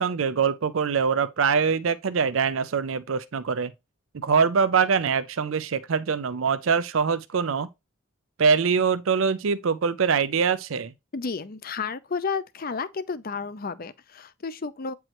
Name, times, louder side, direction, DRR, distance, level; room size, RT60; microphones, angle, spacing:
voice 1, 0.0-3.7 4.1-7.7 8.4-10.9, right 6 dB, 70° right, 0.5 m, -23 dB
voice 2, 11.1-14.9, left 5 dB, 45° left, 0.6 m, -32 dB
8.9 x 4.6 x 3.0 m
head